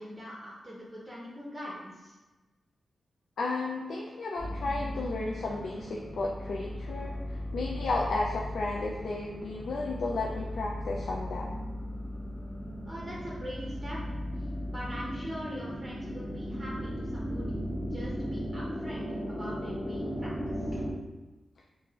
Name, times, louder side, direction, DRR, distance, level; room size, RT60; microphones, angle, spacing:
voice 1, 0.0-2.1 12.9-14.0 14.7-20.8, equal, 10° right, -6 dB, 0.8 m, -42 dB
voice 2, 3.4-11.6, left 3 dB, 85° left, -2 dB, 0.3 m, -33 dB
sound 1, 4.4-20.9, equal, 25° left, 0.8 m, -36 dB
4.7 x 2.5 x 2.4 m, 1.1 s
wide cardioid pair, 95°, 0 cm